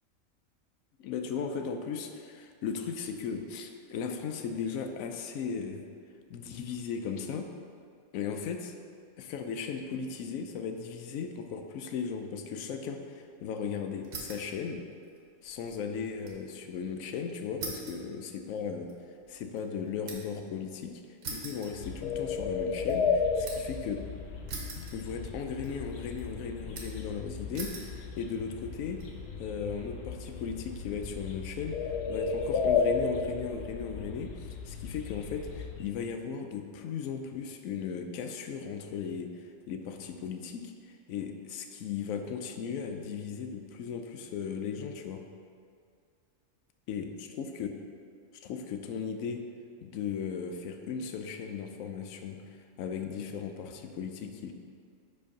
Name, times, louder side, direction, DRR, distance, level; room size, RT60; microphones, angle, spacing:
voice 1, 1.0-5.8 6.3-7.5 8.1-8.7 9.2-14.8 15.4-18.9 19.3-21.0 21.3-24.0 24.9-29.0 29.4-45.2 46.9-47.7 48.4-49.4 49.8-52.4 52.8-54.5, left 6 dB, 90° left, 5 dB, 1.0 m, -37 dB
sound 1, 14.0-14.6 14.9-16.4 16.8-16.9 17.6-20.4 21.2-22.4 22.7-23.8 24.5-25.4 25.6-26.2 26.8-27.1 27.5-28.0 28.6-29.1, right 3 dB, 75° right, 1.3 m, -43 dB
sound 2, 21.7-35.8, left 5 dB, 60° left, 0.8 m, -34 dB
5.1 x 4.7 x 5.3 m, 2.3 s
omnidirectional pair, 1.4 m